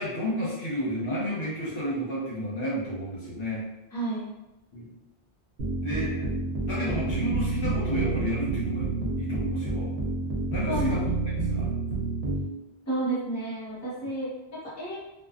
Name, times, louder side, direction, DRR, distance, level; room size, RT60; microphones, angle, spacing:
voice 1, 0.0-3.6 4.7-4.9 5.8-6.3 6.6-8.9 9.2-9.9 10.5-11.1 11.5-11.7, equal, 55° left, -7 dB, 1.0 m, -31 dB
voice 2, 3.9-4.3 10.7-11.0 12.9-15.0, right 2 dB, 15° left, -9 dB, 0.8 m, -31 dB
sound 1, 5.6-12.5, right 3 dB, 70° right, 0.9 m, -29 dB
2.4 x 2.3 x 2.3 m, 0.95 s
omnidirectional pair, 1.2 m